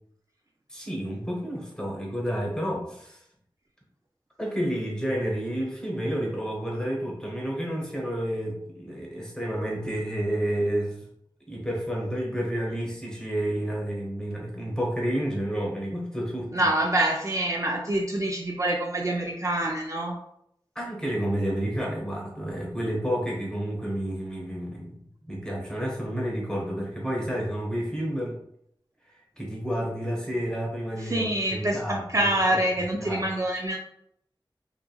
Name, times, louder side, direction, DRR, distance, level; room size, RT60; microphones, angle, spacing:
voice 1, 0.7-3.2 4.4-11.1 11.5-16.7 20.7-24.9 25.2-28.4 29.4-31.3 31.5-32.3 33.0-33.3, equal, 10° left, -2 dB, 0.9 m, -30 dB
voice 2, 16.5-20.2 31.0-33.8, right 1 dB, 35° right, -1 dB, 0.4 m, -26 dB
2.9 x 2.4 x 2.3 m, 0.73 s
wide cardioid pair, 45°, 9 cm